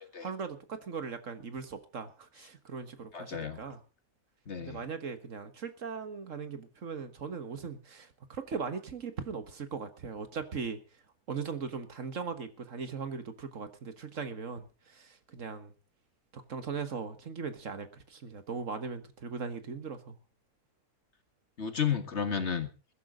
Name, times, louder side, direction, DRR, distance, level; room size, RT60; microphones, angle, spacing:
voice 1, 0.2-3.8 4.6-10.8 11.3-15.7 16.3-20.2, right 5 dB, 65° right, 10 dB, 1.8 m, -39 dB
voice 2, 3.1-3.7 4.5-4.8 21.6-22.7, left 7 dB, 50° left, 9 dB, 2.0 m, -32 dB
21.5 x 11.0 x 3.9 m, 0.32 s
omnidirectional pair, 1.5 m